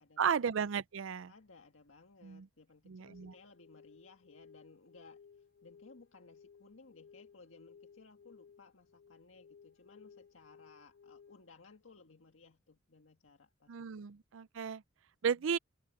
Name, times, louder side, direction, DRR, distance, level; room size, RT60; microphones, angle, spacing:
voice 1, 0.2-1.3 2.2-2.5 2.9-3.3 13.7-14.8 15.2-15.6, right 7 dB, 80° right, 0.5 m, -34 dB
voice 2, 1.3-5.2 5.6-13.7 15.4-15.5, left 3 dB, 90° left, 1.7 m, -60 dB
sound 1, 3.0-11.5, left 6 dB, 55° left, 1.2 m, -60 dB
head